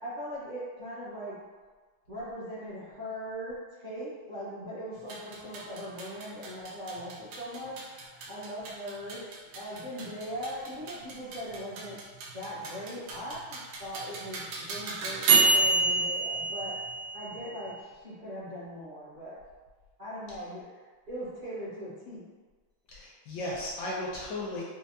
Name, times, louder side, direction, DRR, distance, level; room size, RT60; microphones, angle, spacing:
voice 1, 0.0-1.4 2.1-7.8 8.3-9.2 9.5-12.0 12.3-16.7 17.1-17.7 18.0-19.4 20.0-20.6 21.1-22.3, equal, 60° right, -11 dB, 0.5 m, -40 dB
sound 1, 5.0-17.7, right 3 dB, 90° right, 1.5 m, -30 dB
voice 2, 22.9-24.6, left 1 dB, 70° left, -4 dB, 1.1 m, -35 dB
4.4 x 2.0 x 2.6 m, 1.4 s
omnidirectional pair, 2.2 m